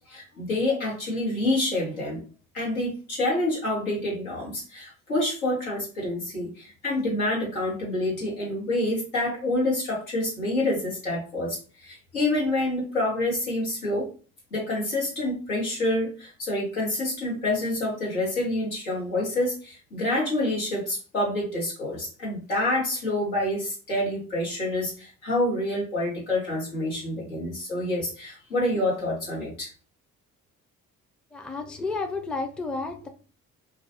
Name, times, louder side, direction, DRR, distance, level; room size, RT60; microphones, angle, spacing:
voice 1, 0.1-2.2 2.5-14.1 14.5-29.7, left 1 dB, 90° left, -4 dB, 1.1 m, -27 dB
voice 2, 31.3-33.1, left 3 dB, ahead, 5 dB, 0.4 m, -31 dB
2.4 x 2.2 x 2.6 m, 0.37 s
hypercardioid pair, 45°, 42 cm